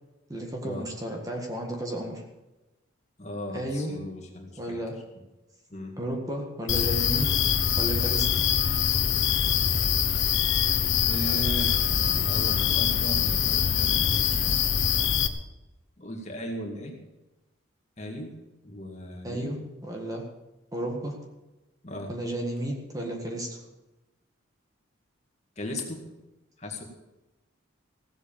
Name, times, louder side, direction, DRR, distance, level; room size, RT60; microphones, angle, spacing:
voice 1, 0.3-2.2 3.5-3.9 4.6-5.0 6.0-7.3 7.8-8.4 19.2-20.3 20.7-21.2 22.1-23.6, right 1 dB, 15° right, 1 dB, 1.8 m, -33 dB
voice 2, 3.2-4.8 5.7-6.0 11.1-14.7 16.0-16.9 18.0-18.4 18.6-19.6 21.8-22.1 25.6-26.1 26.6-26.8, equal, 30° left, 2 dB, 2.0 m, -37 dB
sound 1, 6.7-15.3, left 8 dB, 65° left, 1.0 m, -24 dB
16.5 x 8.0 x 7.3 m, 1.0 s
head